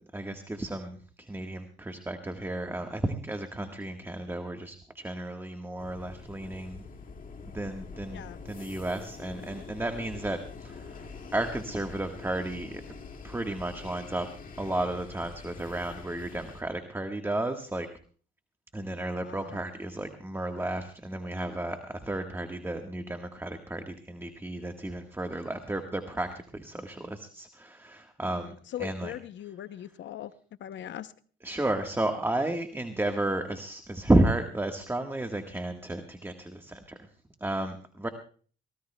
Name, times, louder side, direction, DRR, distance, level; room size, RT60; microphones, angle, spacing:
voice 1, 0.1-6.8 7.4-12.8 13.2-14.3 14.6-17.9 18.7-28.5 28.8-29.1 31.4-37.0 37.4-38.1, right 1 dB, 10° right, 1.4 m, -32 dB
sound 1, 5.8-16.6, left 4 dB, 45° left, 2.0 m, -45 dB
voice 2, 19.2-19.6 28.3-30.3 30.6-31.1, left 12 dB, 70° left, 0.7 m, -40 dB
23.5 x 18.0 x 2.2 m
cardioid pair, 90°, 20 cm